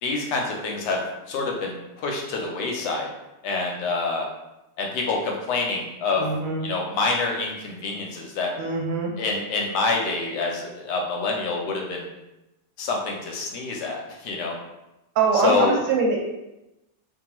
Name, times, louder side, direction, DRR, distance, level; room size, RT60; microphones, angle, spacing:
voice 1, 0.0-1.0 1.3-3.1 3.4-4.3 4.8-6.3 6.6-8.5 9.2-12.1 12.8-14.5 15.4-15.8, left 3 dB, 75° left, 0 dB, 1.2 m, -26 dB
voice 2, 6.2-6.6 8.6-9.1 15.1-16.2, right 4 dB, 85° right, -2 dB, 1.4 m, -23 dB
2.8 x 2.2 x 2.9 m, 0.95 s
omnidirectional pair, 1.9 m